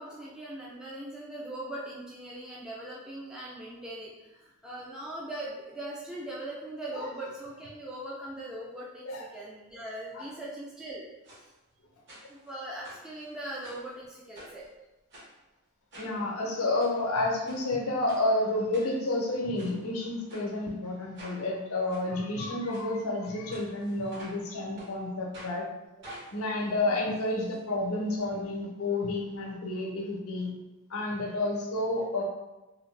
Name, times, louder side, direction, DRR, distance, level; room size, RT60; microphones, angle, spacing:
voice 1, 0.0-11.0 11.3-11.5 12.3-14.7 26.9-27.0, right 1 dB, 5° right, -6 dB, 0.3 m, -40 dB
sound 1, 11.2-11.4 12.1-12.5 12.8-13.9 14.3-14.7 15.1-15.3 15.9-16.2 16.6-16.9 17.5-17.6 18.1-18.2 18.7-19.2 19.6-19.7 20.3-20.5 21.1-21.4 21.9-22.0 22.7-22.9 23.5-24.4 24.8-24.9 25.3-25.6 26.0-27.6 27.9-28.0 28.2-28.3, equal, 55° right, 1.0 m, -49 dB
voice 2, 16.0-25.7 26.3-30.5 30.9-32.2, left 2 dB, 75° left, 0 dB, 0.6 m, -30 dB
2.7 x 2.5 x 3.1 m, 1.0 s
head